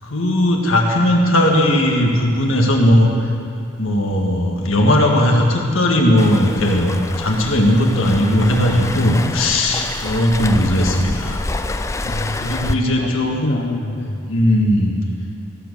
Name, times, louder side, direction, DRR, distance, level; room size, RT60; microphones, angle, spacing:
voice 1, 0.0-3.3 3.8-6.9 7.2-11.4 12.4-13.4 14.3-15.0, left 1 dB, 75° left, 0 dB, 1.9 m, -17 dB
Waves surf, 6.2-12.7, left 2 dB, 15° left, 0.4 m, -28 dB
voice 2, 12.0-13.1 13.4-14.2, left 1 dB, 55° left, -1 dB, 0.8 m, -25 dB
16.5 x 7.6 x 6.8 m, 2.5 s
head